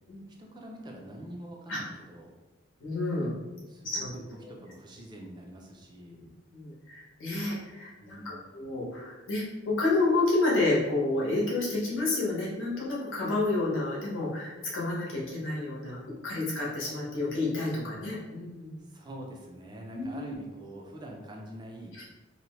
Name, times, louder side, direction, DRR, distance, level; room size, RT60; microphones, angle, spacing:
voice 1, 0.4-2.3 3.7-6.2 8.0-8.5 18.8-22.0, right 1 dB, 20° right, 0 dB, 0.3 m, -45 dB
voice 2, 2.8-3.3 3.8-4.1 6.1-16.0 16.2-18.8 19.9-20.4, left 2 dB, 80° left, -5 dB, 1.0 m, -30 dB
2.8 x 2.1 x 2.9 m, 1.1 s
head